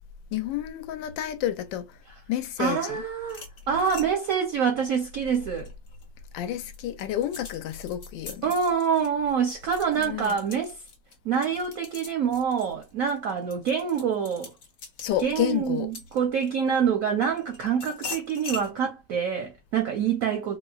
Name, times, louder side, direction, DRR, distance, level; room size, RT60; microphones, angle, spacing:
voice 1, 0.3-1.9 2.3-3.0 6.3-8.4 10.0-10.4 15.0-15.9, left 11 dB, 80° left, 1.3 m, -30 dB
voice 2, 2.6-5.7 8.4-10.8 11.2-14.5 15.2-20.6, right 7 dB, 70° right, 0.8 m, -26 dB
sound 1, 3.2-6.1 6.5-16.7 17.2-18.7, left 5 dB, 60° left, 0.7 m, -43 dB
4.2 x 2.1 x 2.3 m
omnidirectional pair, 2.0 m